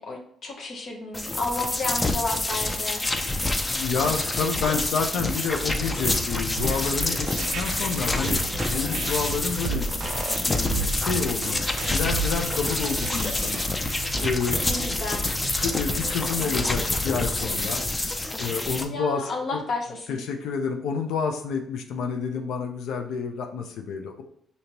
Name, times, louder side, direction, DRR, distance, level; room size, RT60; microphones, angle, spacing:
voice 1, 0.0-3.0 14.6-15.2 18.9-20.2, left 2 dB, 60° left, 1 dB, 0.9 m, -32 dB
sound 1, 1.1-18.9, left 2 dB, 20° left, 0.5 m, -27 dB
voice 2, 3.6-10.0 10.4-14.6 15.6-17.8 18.4-19.6 20.1-24.2, left 5 dB, 85° left, 4 dB, 0.6 m, -29 dB
sound 2, 5.5-17.7, left 1 dB, 5° right, 1.3 m, -38 dB
sound 3, 6.6-14.3, right 5 dB, 65° right, 0.4 m, -34 dB
5.1 x 2.8 x 2.9 m, 0.67 s
cardioid pair, 90°, 0 cm